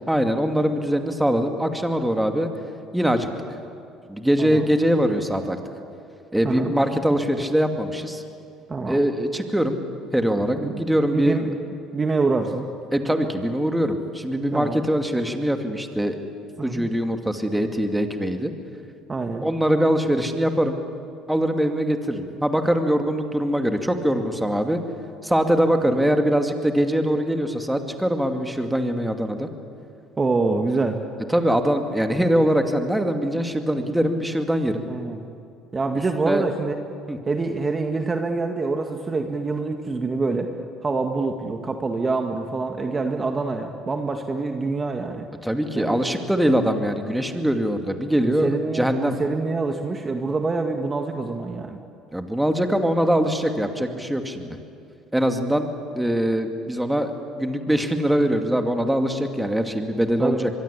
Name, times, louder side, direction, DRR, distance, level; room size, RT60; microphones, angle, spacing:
voice 1, 0.1-2.5 2.9-3.3 4.1-5.6 6.3-8.2 8.9-9.8 10.1-11.4 12.9-16.2 16.6-18.5 19.4-20.8 21.3-24.8 25.2-29.5 31.3-34.8 36.3-36.4 37.1-37.2 45.4-49.1 52.1-54.6 55.1-55.7 55.9-57.1 57.4-60.5, equal, 5° right, 5 dB, 2.5 m, -22 dB
voice 2, 8.7-9.0 10.6-10.8 11.1-11.6 11.9-12.7 14.5-14.8 16.6-16.9 19.1-19.5 30.2-31.0 33.8-33.9 34.9-35.2 35.7-36.7 37.3-40.5 40.8-45.3 45.7-46.0 48.2-51.8 60.2-60.5, right 3 dB, 25° right, 5 dB, 2.0 m, -26 dB
24.5 x 22.0 x 8.5 m, 2.5 s
supercardioid pair, 75°, 0 cm